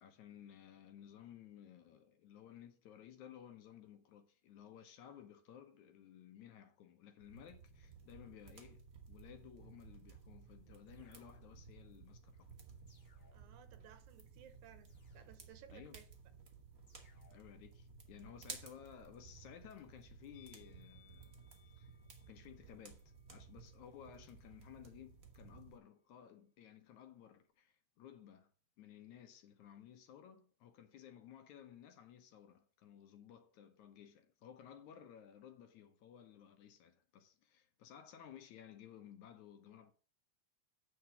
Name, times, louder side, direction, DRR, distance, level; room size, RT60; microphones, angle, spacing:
voice 1, 0.0-12.5 15.7-16.0 17.3-21.5 21.8-21.9 22.3-28.5 28.8-39.9, left 9 dB, 70° left, 2.4 m, -57 dB
sound 1, 7.2-25.8, right 5 dB, 45° right, 1.2 m, -57 dB
sound 2, 10.9-11.8 12.9-13.8 14.9-15.8 16.9-17.7, left 2 dB, 25° left, 2.3 m, -72 dB
voice 2, 13.3-16.0, right 10 dB, 75° right, 2.3 m, -60 dB
Musical instrument, 20.3-25.6 25.8-26.0, left 11 dB, 90° left, 2.8 m, -71 dB
8.7 x 4.8 x 6.9 m
omnidirectional pair, 3.6 m